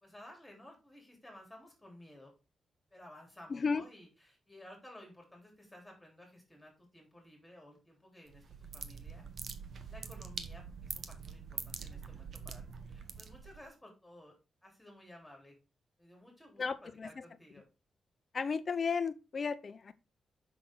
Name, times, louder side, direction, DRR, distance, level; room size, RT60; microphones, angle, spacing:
voice 1, 0.0-2.3 2.9-9.3 9.9-12.6 12.9-14.4 14.6-15.6 16.0-17.7, left 1 dB, 10° left, 3.4 m, -55 dB
voice 2, 3.5-3.8 16.6-17.2 18.3-19.9, left 5 dB, 45° left, 0.7 m, -34 dB
sound 1, 8.3-13.7, right 6 dB, 60° right, 0.9 m, -44 dB
6.0 x 6.0 x 3.7 m
cardioid pair, 105°, 0 cm